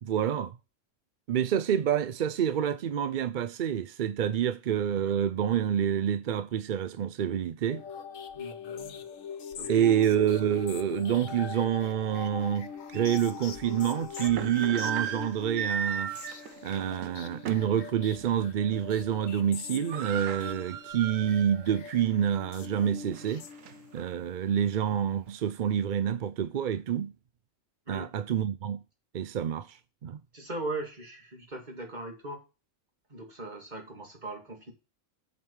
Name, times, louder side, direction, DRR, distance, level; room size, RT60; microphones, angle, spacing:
voice 1, 0.0-0.6 1.3-7.8 9.7-16.1 16.6-23.4 23.9-27.1 27.9-28.8 29.1-30.2, right 9 dB, 55° right, 0.5 m, -28 dB
sound 1, 7.6-24.1, left 7 dB, 85° left, 1.3 m, -42 dB
voice 2, 8.3-9.0 9.6-9.9 27.9-28.1 30.3-32.4 33.1-34.7, right 2 dB, 35° right, 2.5 m, -39 dB
sound 2, 12.2-12.3 12.9-13.0 13.9-17.8 18.2-18.4 18.7-19.1 19.4-19.5 19.7-21.7 22.1-22.2 22.8-24.1, right 8 dB, 90° right, 1.2 m, -36 dB
7.8 x 5.2 x 7.1 m
omnidirectional pair, 1.3 m